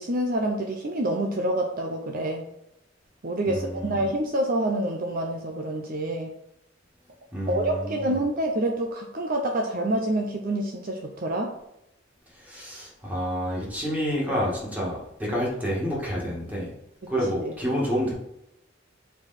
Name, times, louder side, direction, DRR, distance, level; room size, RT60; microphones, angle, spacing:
voice 1, 0.0-2.4 3.2-6.3 7.5-11.5 17.0-17.1 17.4-17.5, right 1 dB, 45° right, 2 dB, 0.6 m, -27 dB
voice 2, 3.5-4.0 7.3-8.2 12.4-16.7 17.1-18.1, equal, 10° right, -5 dB, 1.9 m, -29 dB
4.9 x 4.5 x 4.2 m, 0.83 s
head